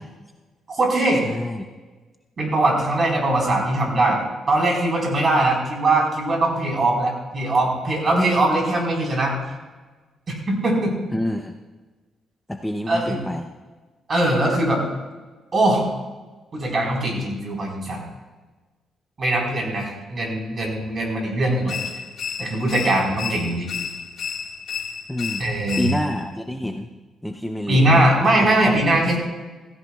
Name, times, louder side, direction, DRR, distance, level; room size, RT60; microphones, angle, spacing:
voice 1, 0.7-1.2 2.4-4.2 4.5-9.5 10.3-10.9 12.9-13.2 14.1-14.8 15.5-15.9 16.5-18.1 19.2-21.8 22.4-23.7 25.4-25.9 27.7-29.2, right 1 dB, 40° right, -1 dB, 4.3 m, -21 dB
voice 2, 1.2-1.6 11.1-11.5 12.5-13.5 25.1-25.5 25.8-26.9 27.2-27.8 28.6-28.7, left 1 dB, 5° left, 4 dB, 0.6 m, -27 dB
sound 1, 21.7-26.3, left 7 dB, 55° left, 1.9 m, -32 dB
16.5 x 16.0 x 2.4 m, 1.3 s
cardioid pair, 120°, 0 cm